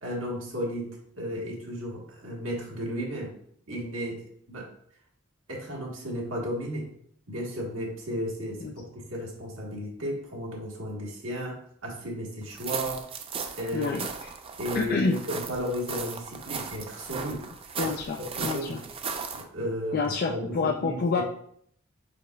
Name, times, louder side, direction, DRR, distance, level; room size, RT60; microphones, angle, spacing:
voice 1, 0.0-3.3 3.7-4.7 5.5-6.9 7.3-13.0 13.6-14.0 14.6-17.4 17.8-17.9 18.4-18.8 19.3-20.0 20.3-21.2, equal, 80° right, -2 dB, 1.4 m, -34 dB
sound 1, 12.5-19.4, right 5 dB, 25° right, 0.4 m, -37 dB
voice 2, 13.7-14.3 14.7-15.2 17.8-18.8 19.9-21.2, left 4 dB, 45° left, 3 dB, 0.3 m, -28 dB
5.1 x 4.7 x 2.2 m, 0.65 s
head